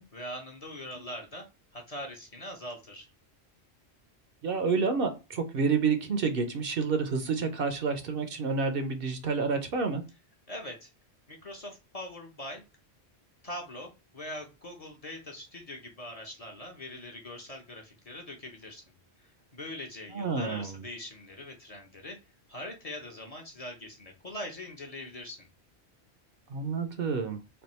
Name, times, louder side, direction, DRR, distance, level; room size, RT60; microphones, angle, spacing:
voice 1, 0.1-1.5 1.7-3.1 10.5-10.9 11.3-12.6 13.4-18.8 19.2-22.2 22.5-25.5, left 1 dB, 35° left, 1 dB, 0.8 m, -42 dB
voice 2, 4.4-10.0 20.1-20.8 26.5-27.4, right 5 dB, 60° right, 7 dB, 0.8 m, -29 dB
3.4 x 2.3 x 4.1 m, 0.27 s
omnidirectional pair, 1.1 m